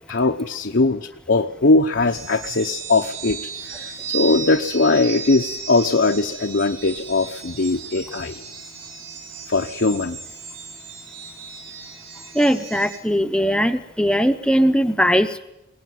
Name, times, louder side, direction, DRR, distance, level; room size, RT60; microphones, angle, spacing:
voice 1, 0.1-3.4 3.7-8.3 9.5-10.2, left 3 dB, 65° left, 3 dB, 0.9 m, -20 dB
sound 1, 2.1-13.0, right 6 dB, 70° right, 4.7 m, -35 dB
voice 2, 12.3-15.4, equal, 5° left, 8 dB, 0.8 m, -19 dB
22.5 x 18.5 x 9.4 m, 0.91 s
head